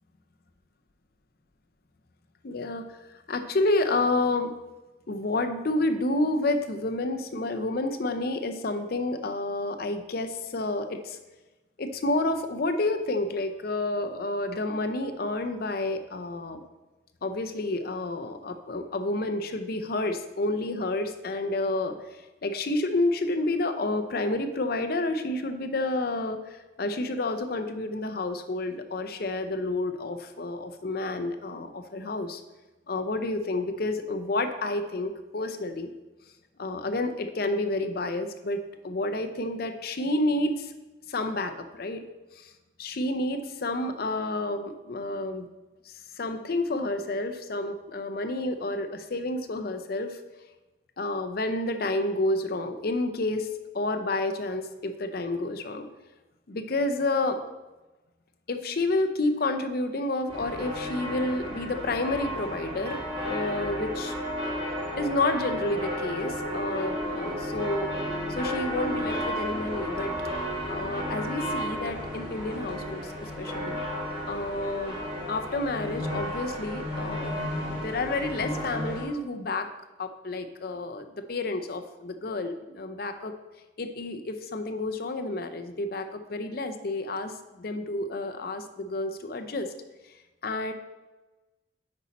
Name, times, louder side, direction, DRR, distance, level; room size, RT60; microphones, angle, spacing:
voice 1, 2.4-2.8 3.3-4.5 5.1-11.2 11.8-16.6 17.2-21.9 22.4-32.4 32.9-35.9 36.6-40.7 41.1-42.0 42.4-42.5 42.8-45.5 45.9-50.2 51.0-53.5 53.7-55.9 56.5-57.4 58.5-64.1 65.0-67.9 68.3-70.1 70.7-73.8 74.3-75.0 75.3-77.4 77.7-79.7 80.0-83.3 83.8-89.7 90.4-90.7, left 2 dB, 55° left, 8 dB, 0.5 m, -30 dB
sound 1, 60.3-79.0, equal, 30° right, 2.7 m, -33 dB
8.3 x 5.3 x 4.1 m, 1.1 s
head